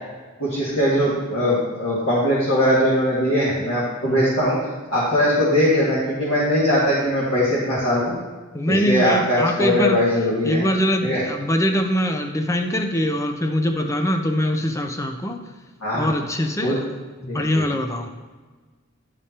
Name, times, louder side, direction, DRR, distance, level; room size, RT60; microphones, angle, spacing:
voice 1, 0.4-4.6 4.9-8.1 8.7-10.6 11.0-11.2 15.8-16.1 16.6-16.8 17.3-17.6, equal, 65° left, -9 dB, 1.9 m, -20 dB
voice 2, 8.5-10.0 10.4-15.4 15.9-16.8 17.2-18.1, equal, 15° left, 5 dB, 0.5 m, -23 dB
11.0 x 5.0 x 2.9 m, 1.3 s
head